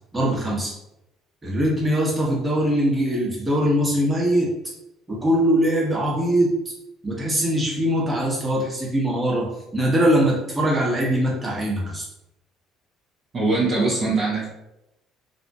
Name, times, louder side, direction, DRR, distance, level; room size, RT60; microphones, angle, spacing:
voice 1, 0.1-0.7 1.4-4.5 5.1-6.7 7.0-12.0, equal, 20° right, -4 dB, 1.0 m, -22 dB
voice 2, 13.3-14.5, right 3 dB, 40° right, -6 dB, 0.7 m, -22 dB
2.7 x 2.4 x 2.3 m, 0.88 s
hypercardioid pair, 55°, 0 cm